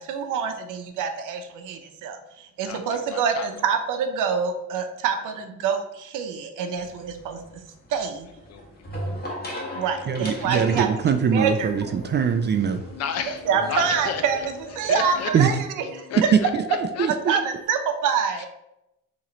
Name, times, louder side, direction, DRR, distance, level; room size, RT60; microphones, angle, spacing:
voice 1, 0.0-7.4 7.9-8.3 9.7-10.9 11.3-11.9 13.5-15.7 15.9-16.1 17.1-18.5, right 6 dB, 90° right, 6 dB, 0.7 m, -26 dB
voice 2, 2.6-3.5 8.5-8.6 13.0-13.4 13.7-14.2 14.9-15.3 16.1-16.5 17.0-17.4 18.4-18.5, left 7 dB, 55° left, 7 dB, 0.6 m, -32 dB
sound 1, 6.7-15.3, equal, 30° left, 1.6 m, -38 dB
sound 2, 9.6-17.6, left 4 dB, 80° left, 1.2 m, -45 dB
voice 3, 10.1-12.8 15.3-15.5 16.5-16.6 17.0-17.3, right 7 dB, 35° right, 8 dB, 0.4 m, -22 dB
4.3 x 3.1 x 3.8 m, 0.88 s
cardioid pair, 90°, 30 cm